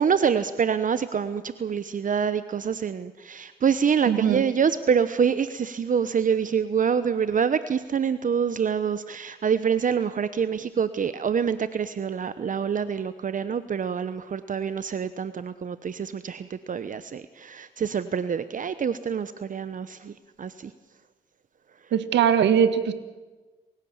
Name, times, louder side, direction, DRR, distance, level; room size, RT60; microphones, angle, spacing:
voice 1, 0.0-20.7, right 7 dB, 45° right, 13 dB, 1.0 m, -26 dB
voice 2, 4.1-4.4 21.9-22.9, right 8 dB, 75° right, 11 dB, 1.7 m, -21 dB
29.5 x 16.0 x 7.2 m, 1.3 s
supercardioid pair, 60°, 18 cm